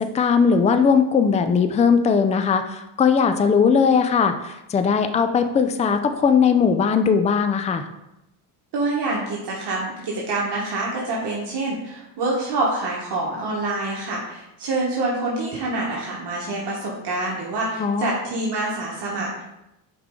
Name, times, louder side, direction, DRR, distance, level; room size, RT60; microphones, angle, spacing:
voice 1, 0.0-7.9 17.8-18.1, left 6 dB, 15° left, 9 dB, 0.3 m, -19 dB
voice 2, 8.7-19.4, right 2 dB, 55° right, -4 dB, 1.4 m, -26 dB
5.6 x 4.7 x 3.7 m, 0.89 s
cardioid pair, 90°, 48 cm